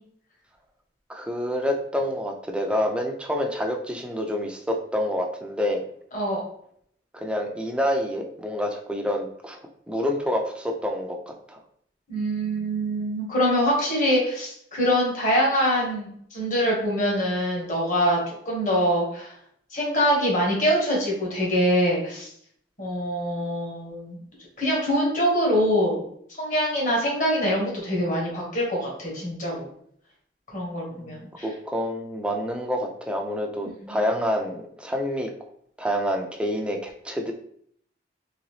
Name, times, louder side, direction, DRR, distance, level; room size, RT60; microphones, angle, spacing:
voice 1, 1.1-5.8 7.1-9.6 9.9-11.6 30.9-35.3 35.8-37.3, equal, 5° right, 2 dB, 0.4 m, -28 dB
voice 2, 12.1-19.3 19.7-22.3 22.8-24.2 24.6-26.0 26.4-29.6 30.5-31.4 33.8-34.0, equal, 45° left, -3 dB, 1.4 m, -24 dB
3.9 x 3.1 x 3.2 m, 0.66 s
head